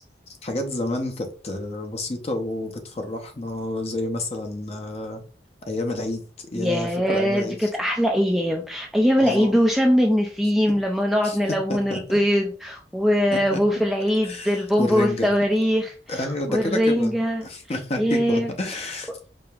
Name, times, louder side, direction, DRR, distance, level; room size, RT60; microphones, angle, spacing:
voice 1, 0.4-5.2 5.7-7.7 9.2-9.6 11.2-11.4 11.7-12.2 13.3-13.6 14.2-15.3 16.1-17.1 17.4-19.1, left 2 dB, 35° left, 4 dB, 0.7 m, -29 dB
voice 2, 6.5-16.2 16.5-17.5 18.0-18.5, equal, ahead, 1 dB, 0.3 m, -22 dB
4.9 x 2.9 x 2.3 m, 0.38 s
head